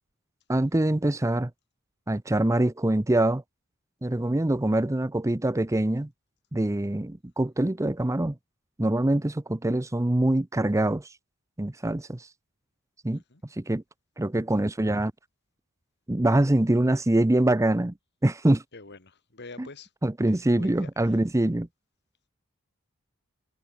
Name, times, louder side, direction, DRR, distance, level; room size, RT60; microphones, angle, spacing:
voice 1, 0.5-1.5 2.1-3.4 4.0-6.1 6.5-8.3 8.8-11.1 11.6-12.3 13.0-13.2 13.6-13.8 14.2-15.1 16.1-17.9 18.2-18.6 19.6-19.7 20.0-21.7, right 1 dB, 15° right, 0.6 m, -24 dB
voice 2, 18.7-19.9 20.6-20.9, left 3 dB, 50° left, 3.0 m, -45 dB
head